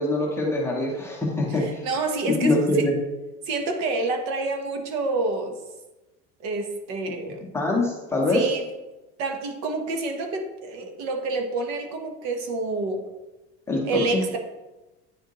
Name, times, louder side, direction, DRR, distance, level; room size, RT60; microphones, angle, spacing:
voice 1, 0.0-1.8 2.3-2.9 7.5-8.5 13.7-14.2, left 2 dB, 10° left, -2 dB, 0.8 m, -24 dB
voice 2, 1.6-2.9 3.5-5.6 6.4-7.4 8.3-8.7 9.2-13.0 13.8-14.4, right 3 dB, 55° right, 4 dB, 1.1 m, -28 dB
9.2 x 4.9 x 3.0 m, 1.1 s
cardioid pair, 175°, 29 cm